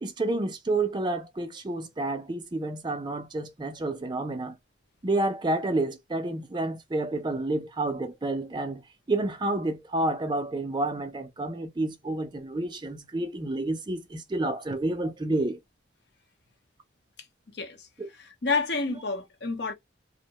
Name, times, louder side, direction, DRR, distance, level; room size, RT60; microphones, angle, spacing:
voice 1, 0.0-4.6 5.0-8.8 9.1-15.6 18.0-18.1, right 2 dB, 25° right, 0.4 m, -29 dB
voice 2, 17.5-17.9 18.4-19.7, left 4 dB, 60° left, 0.8 m, -29 dB
2.6 x 2.1 x 2.8 m
head